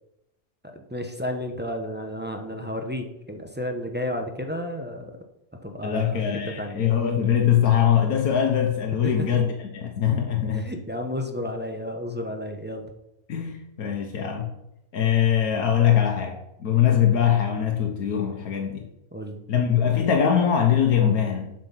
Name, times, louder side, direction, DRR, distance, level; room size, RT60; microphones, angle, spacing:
voice 1, 0.7-5.1 5.6-6.8 9.0-9.5 10.5-12.9 19.1-19.4, left 1 dB, 10° right, 3 dB, 0.7 m, -32 dB
voice 2, 5.8-10.7 13.3-14.5 14.9-18.9 19.5-21.5, left 9 dB, 80° left, 2 dB, 1.5 m, -22 dB
7.6 x 6.1 x 5.7 m, 0.87 s
omnidirectional pair, 1.5 m